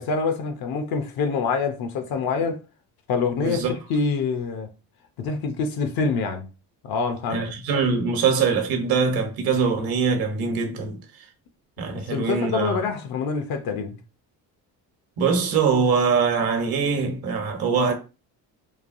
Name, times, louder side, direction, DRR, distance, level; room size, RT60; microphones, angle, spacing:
voice 1, 0.0-2.6 3.1-4.7 5.2-6.5 6.8-7.4 11.9-14.0, left 5 dB, 65° left, 0.6 m, -26 dB
voice 2, 3.4-3.7 7.3-11.0 11.8-12.8 15.2-17.9, right 5 dB, 65° right, 1.0 m, -23 dB
3.2 x 2.2 x 2.5 m
cardioid pair, 95°, 38 cm